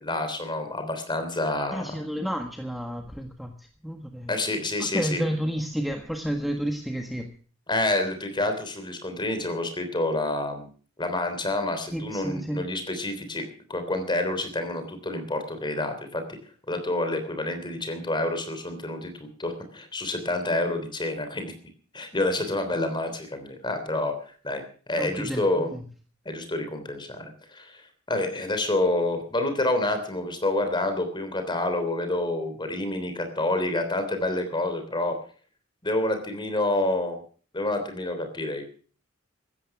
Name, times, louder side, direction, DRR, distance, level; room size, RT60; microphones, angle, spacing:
voice 1, 0.0-1.9 4.3-5.2 7.7-10.7 11.0-13.4 13.7-16.4 16.7-21.5 21.9-25.7 26.3-35.2 35.8-37.2 37.5-38.6, left 2 dB, 20° left, 7 dB, 3.4 m, -28 dB
voice 2, 1.7-4.3 4.8-7.3 11.9-12.6 25.0-25.8, equal, ahead, 3 dB, 1.5 m, -31 dB
16.0 x 13.5 x 5.9 m, 0.43 s
head